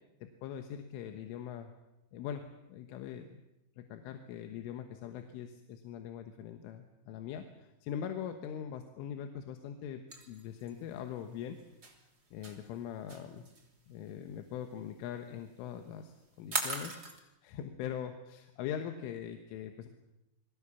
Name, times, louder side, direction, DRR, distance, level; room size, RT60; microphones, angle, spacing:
voice 1, 0.2-1.7 2.1-3.4 3.8-11.6 12.3-13.5 13.9-17.0 17.4-19.9, left 9 dB, 90° left, 6 dB, 3.9 m, -42 dB
sound 1, 10.1-17.2, right 3 dB, 25° right, 2.9 m, -40 dB
29.5 x 22.5 x 7.1 m, 0.92 s
omnidirectional pair, 5.5 m